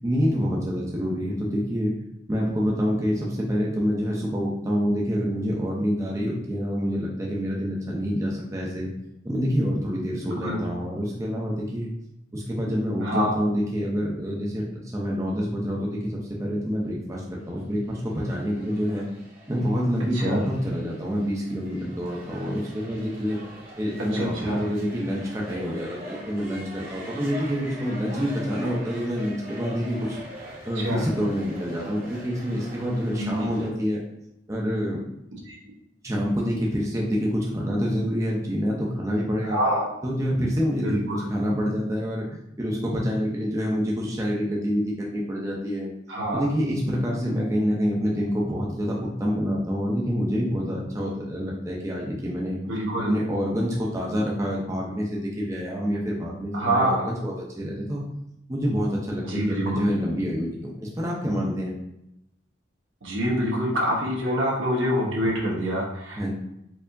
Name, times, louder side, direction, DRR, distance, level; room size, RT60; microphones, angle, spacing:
voice 1, 0.0-1.9 2.3-8.9 9.2-11.9 12.3-19.0 19.5-23.4 23.8-30.2 30.6-34.0 34.5-35.0 36.0-39.6 40.0-42.3 42.6-45.9 46.3-52.6 53.1-58.0 58.5-61.7 66.2-66.3, equal, 15° right, -3 dB, 0.5 m, -27 dB
voice 2, 10.3-10.6 13.0-13.4 20.1-20.4 24.1-24.6 30.8-31.1 33.2-33.3 35.5-35.6 39.4-39.9 40.8-41.2 46.1-46.5 52.6-53.1 56.5-57.1 59.2-59.9 63.0-66.2, equal, 85° right, -3 dB, 1.1 m, -26 dB
sound 1, 17.6-33.7, equal, 50° right, 0.9 m, -42 dB
4.4 x 2.7 x 2.6 m, 0.83 s
head